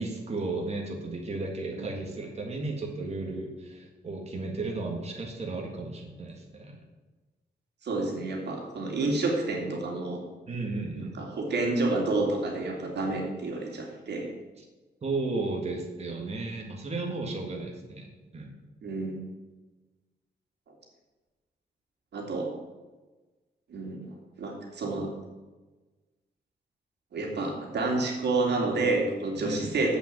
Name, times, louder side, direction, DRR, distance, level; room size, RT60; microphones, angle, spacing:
voice 1, 0.0-6.8 10.5-11.2 14.6-14.7 15.0-18.5 29.4-29.8, right 3 dB, 40° right, 1 dB, 1.8 m, -34 dB
voice 2, 7.8-10.2 11.1-14.3 18.8-19.2 22.1-22.5 23.7-24.1 24.4-25.1 27.1-30.0, right 2 dB, 90° right, 0 dB, 2.4 m, -29 dB
7.9 x 7.0 x 7.5 m, 1.2 s
wide cardioid pair, 140°, 17 cm